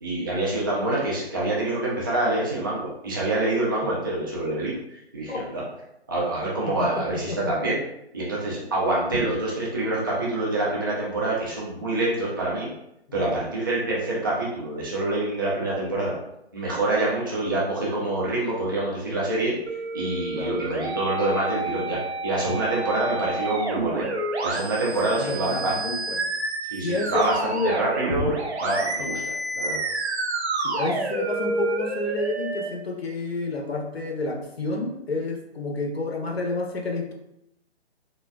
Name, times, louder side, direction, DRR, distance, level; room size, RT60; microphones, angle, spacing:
voice 1, 0.0-4.8 5.1-5.6 6.1-7.8 8.1-12.7 13.1-16.2 16.5-19.5 19.9-24.1 24.4-25.7 26.7-29.8, right 2 dB, 20° right, -6 dB, 0.4 m, -26 dB
voice 2, 6.8-7.5 13.1-13.4 20.4-20.6 24.9-26.3 26.8-27.8 29.0-29.2 30.6-37.1, left 2 dB, 65° left, 2 dB, 0.8 m, -30 dB
sound 1, 19.7-32.7, right 2 dB, 75° right, 0.8 m, -29 dB
4.1 x 2.2 x 2.2 m, 0.79 s
figure-of-eight pair, 145°, 33 cm